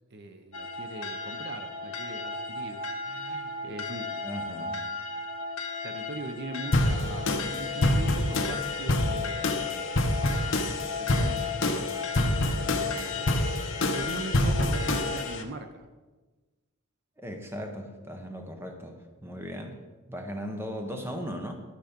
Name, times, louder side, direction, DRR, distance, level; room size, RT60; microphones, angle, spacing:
voice 1, 0.1-4.2 5.8-9.7 10.2-15.9, right 2 dB, 50° right, 7 dB, 0.7 m, -41 dB
sound 1, 0.5-15.4, left 4 dB, 70° left, 1.2 m, -35 dB
voice 2, 4.2-4.8 17.2-19.8 20.1-21.5, equal, 10° right, 4 dB, 0.9 m, -37 dB
sound 2, 6.7-15.4, left 1 dB, 55° left, 0.9 m, -27 dB
11.5 x 6.4 x 5.2 m, 1.2 s
head